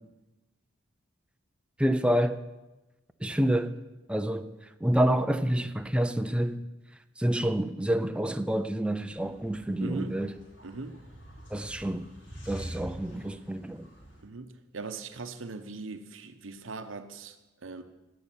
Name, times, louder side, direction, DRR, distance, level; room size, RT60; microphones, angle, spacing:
voice 1, 1.8-2.4 3.2-3.8 4.1-4.5 4.8-6.6 7.2-10.3 11.5-12.1 12.5-13.9, right 1 dB, 5° right, 0.5 m, -28 dB
sound 1, 9.1-14.2, equal, 70° left, 5.2 m, -45 dB
voice 2, 9.8-10.3 10.6-11.0 14.2-17.8, right 3 dB, 75° right, 0.9 m, -40 dB
11.0 x 6.6 x 9.0 m
head